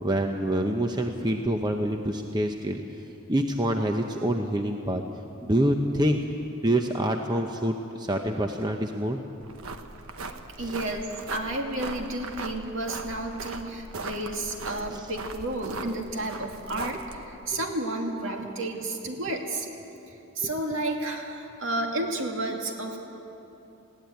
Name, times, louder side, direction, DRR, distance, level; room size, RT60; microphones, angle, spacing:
voice 1, 0.0-2.8 3.3-5.0 5.4-6.2 6.6-9.2 10.6-10.7 14.9-15.0 17.5-17.6 20.4-20.5, right 1 dB, 20° right, 4 dB, 0.8 m, -26 dB
sound 1, 9.4-17.3, right 3 dB, 80° right, 1.2 m, -39 dB
voice 2, 10.3-19.7 20.1-23.0, right 1 dB, 60° right, 2 dB, 2.4 m, -32 dB
20.5 x 16.0 x 9.4 m, 2.9 s
head